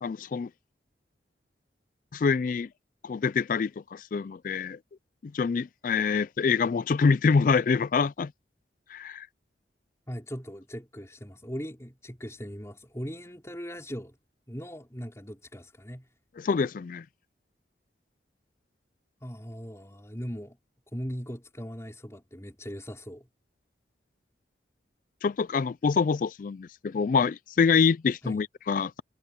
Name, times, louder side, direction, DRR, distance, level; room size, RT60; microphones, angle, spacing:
voice 1, 0.0-0.5 2.1-2.7 3.0-4.8 5.2-8.3 8.9-9.3 16.4-17.0 25.2-29.0, left 5 dB, 45° left, 0.3 m, -26 dB
voice 2, 10.1-14.2 14.5-16.1 19.2-20.6 20.9-23.3 28.2-28.4, equal, 15° left, 5.1 m, -39 dB
head